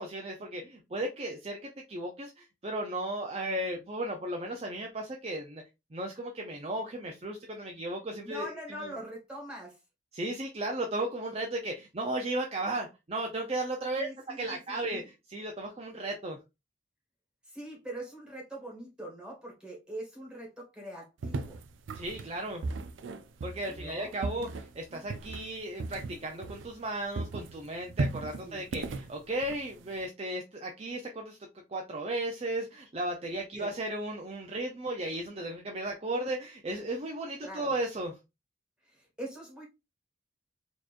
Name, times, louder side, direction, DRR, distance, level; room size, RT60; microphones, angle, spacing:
voice 1, 0.0-5.6 5.9-8.5 8.8-8.9 10.1-16.4 21.9-22.6 23.4-31.4 31.7-38.1, right 1 dB, 35° right, 0.5 m, -35 dB
voice 2, 8.2-9.8 13.9-15.1 17.4-21.6 23.7-24.1 28.4-28.6 33.5-33.7 37.4-37.7 38.8-39.7, right 1 dB, 5° right, 1.6 m, -43 dB
sound 1, 21.2-26.9 27.1-30.1, right 3 dB, 90° right, 0.4 m, -37 dB
4.3 x 3.0 x 2.5 m
head